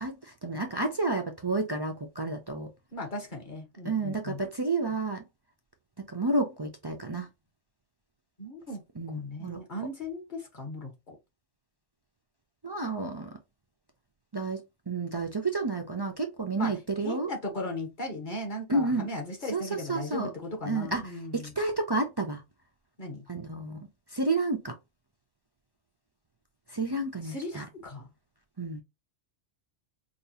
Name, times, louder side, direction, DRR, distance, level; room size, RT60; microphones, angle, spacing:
voice 1, 0.0-2.7 3.8-5.2 6.0-7.3 9.0-9.6 12.6-13.4 14.3-17.3 18.7-19.1 19.5-20.3 20.7-21.0 21.3-22.4 23.3-24.7 26.7-27.7 28.6-28.8, right 3 dB, 40° right, 0.3 m, -30 dB
voice 2, 2.9-4.4 8.4-8.8 9.1-11.1 16.6-16.7 17.0-21.5 23.0-23.2 27.2-28.1, left 1 dB, 45° left, 1.4 m, -37 dB
5.1 x 2.4 x 2.8 m
omnidirectional pair, 1.2 m